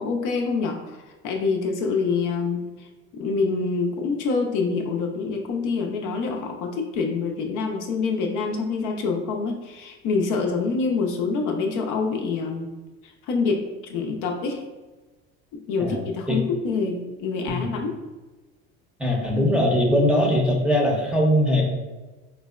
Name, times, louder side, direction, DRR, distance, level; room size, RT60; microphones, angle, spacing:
voice 1, 0.0-2.9 3.1-12.7 13.0-14.6 15.5-18.0, left 4 dB, 55° left, 1 dB, 0.6 m, -26 dB
voice 2, 19.0-21.7, equal, 5° right, -2 dB, 0.6 m, -21 dB
3.9 x 2.0 x 2.3 m, 1.2 s
hypercardioid pair, 75°, 37 cm